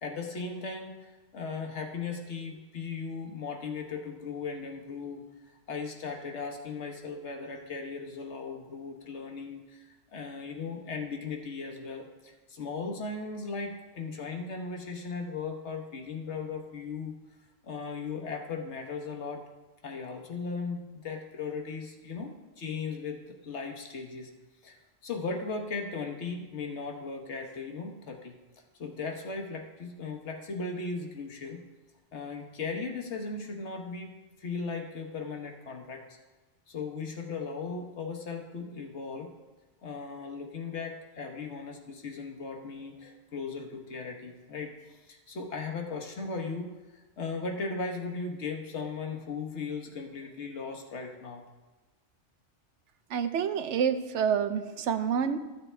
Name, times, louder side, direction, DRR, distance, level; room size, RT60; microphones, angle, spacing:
voice 1, 0.0-5.2 5.7-17.1 17.6-19.4 19.8-24.3 24.6-24.8 25.0-28.3 28.8-31.6 32.1-34.1 34.4-36.0 36.7-39.3 39.8-51.4, left 4 dB, 75° left, 3 dB, 1.4 m, -37 dB
voice 2, 53.1-55.4, right 7 dB, 80° right, 10 dB, 1.0 m, -28 dB
13.5 x 7.5 x 3.3 m, 1.1 s
omnidirectional pair, 1.2 m